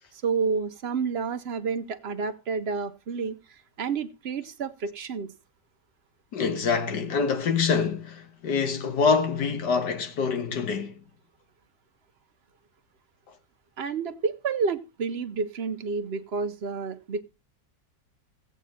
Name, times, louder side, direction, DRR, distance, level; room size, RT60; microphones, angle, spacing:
voice 1, 0.1-5.3 13.8-17.2, right 5 dB, 50° right, 0.8 m, -30 dB
voice 2, 6.3-10.9, left 5 dB, 75° left, 1.8 m, -25 dB
15.5 x 8.4 x 4.2 m
omnidirectional pair, 1.8 m